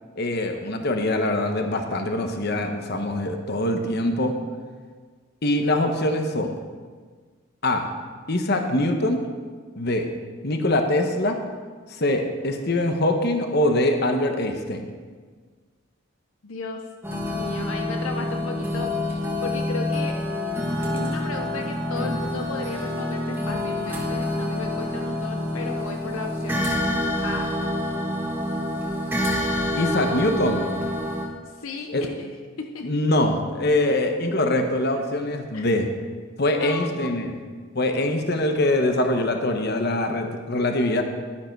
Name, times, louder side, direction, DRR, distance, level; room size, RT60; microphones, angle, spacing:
voice 1, 0.2-4.3 5.4-6.5 7.6-7.9 8.3-9.2 9.8-10.1 10.4-11.4 12.0-14.9 29.8-30.7 31.9-32.0 32.8-35.9 36.4-37.3 37.7-41.0, left 1 dB, 50° left, 5 dB, 1.0 m, -23 dB
voice 2, 16.4-16.9 17.3-20.1 20.9-26.7 27.2-27.5 31.4-32.9 35.5-35.8 36.5-37.4, left 3 dB, 70° left, 3 dB, 0.8 m, -35 dB
sound 1, 17.0-31.3, left 1 dB, 10° right, 1.4 m, -27 dB
11.5 x 10.0 x 4.6 m, 1.5 s
head